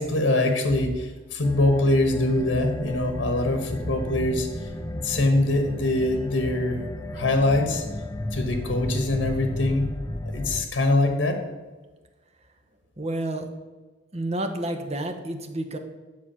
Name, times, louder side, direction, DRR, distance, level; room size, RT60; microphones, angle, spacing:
voice 1, 0.0-4.5 4.9-6.8 7.1-7.8 8.3-9.9 10.3-11.4, left 2 dB, 85° left, 5 dB, 1.2 m, -23 dB
sound 1, 1.4-10.6, left 1 dB, 15° left, 0.4 m, -33 dB
voice 2, 13.0-13.5 14.1-15.8, right 1 dB, 35° right, 6 dB, 0.9 m, -30 dB
8.6 x 6.2 x 5.6 m, 1.3 s
head